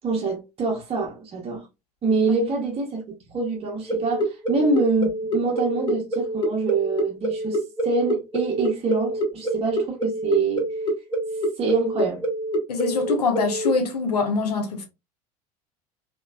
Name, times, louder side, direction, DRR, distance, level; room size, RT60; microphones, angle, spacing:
voice 1, 0.0-1.6 2.0-10.6 11.6-12.2, right 3 dB, 30° right, 0.9 m, -25 dB
sound 1, 3.9-13.7, right 1 dB, 25° left, 0.9 m, -26 dB
voice 2, 12.7-14.9, left 4 dB, 75° left, 0.7 m, -24 dB
3.0 x 2.2 x 2.3 m
figure-of-eight pair, 70°, 20 cm